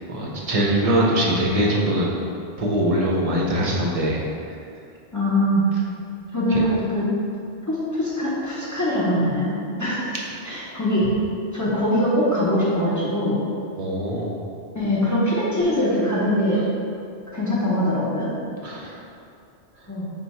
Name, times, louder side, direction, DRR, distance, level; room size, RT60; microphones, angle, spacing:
voice 1, 0.1-2.2 2.6-4.2 6.5-6.6 13.8-14.4 18.6-18.9, right 1 dB, 45° right, -3 dB, 0.5 m, -22 dB
voice 2, 5.1-5.7 6.3-7.1 7.7-9.5 9.8-10.1 10.4-11.1 11.5-13.4 14.7-16.6 17.3-18.3 19.9-20.1, left 1 dB, 20° left, -8 dB, 0.5 m, -22 dB
4.4 x 2.2 x 4.0 m, 2.4 s
omnidirectional pair, 1.1 m